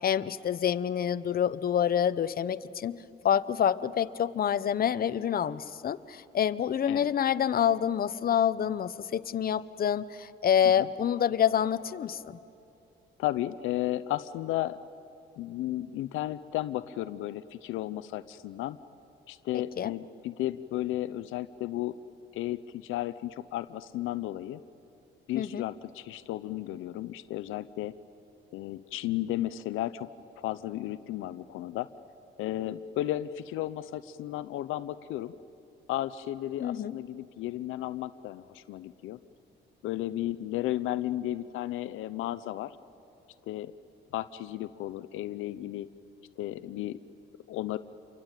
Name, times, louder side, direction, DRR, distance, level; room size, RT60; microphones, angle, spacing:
voice 1, 0.0-3.0 3.2-12.4 19.8-19.9 25.3-25.6 36.6-36.9, left 9 dB, 50° left, 13 dB, 0.8 m, -27 dB
voice 2, 13.2-14.8 15.4-18.8 19.3-22.0 22.3-24.6 25.3-27.9 28.5-30.1 30.4-31.9 32.4-35.3 35.9-39.2 39.8-42.8 43.5-43.7 44.1-45.9 46.4-47.0 47.5-47.8, left 14 dB, 90° left, 14 dB, 0.7 m, -34 dB
28.0 x 23.5 x 9.0 m, 2.7 s
cardioid pair, 90°, 20 cm